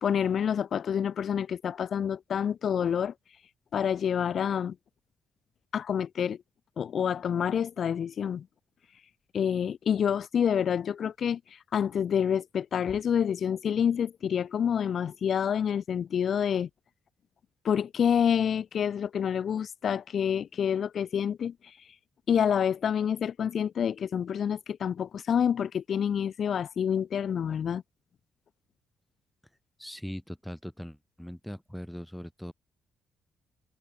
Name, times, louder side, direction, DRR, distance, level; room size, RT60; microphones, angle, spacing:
voice 1, 0.0-3.1 3.7-4.8 5.7-6.4 6.8-8.5 9.3-11.4 11.7-16.7 17.6-21.5 22.3-27.8, left 8 dB, 55° left, 0.7 m, -28 dB
voice 2, 29.8-32.5, equal, ahead, 7.6 m, -40 dB
cardioid pair, 90°, 0 cm